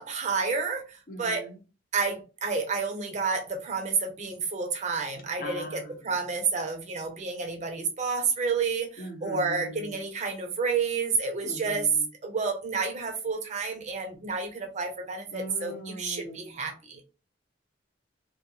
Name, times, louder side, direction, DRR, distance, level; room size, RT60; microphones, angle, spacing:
voice 1, 0.0-1.5 1.9-11.9 12.2-17.0, right 4 dB, 40° right, 0.6 m, -30 dB
voice 2, 1.1-1.6 5.4-6.1 9.0-10.0 11.4-12.1 15.3-16.5, equal, 50° left, 0.8 m, -41 dB
2.4 x 2.3 x 2.9 m
head